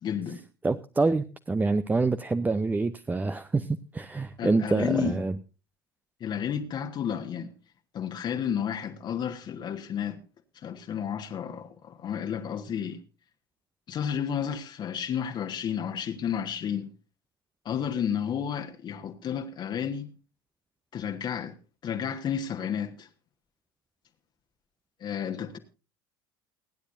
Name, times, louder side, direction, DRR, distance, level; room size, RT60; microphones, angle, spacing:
voice 1, 0.0-0.4 4.4-5.2 6.2-7.5 7.9-10.2 10.5-13.0 13.9-16.9 17.6-20.1 20.9-21.5 21.8-23.1 25.0-25.6, left 8 dB, 40° left, 1.4 m, -31 dB
voice 2, 0.6-5.4, right 3 dB, 15° right, 0.7 m, -26 dB
29.0 x 10.0 x 2.6 m
figure-of-eight pair, 65°, 12 cm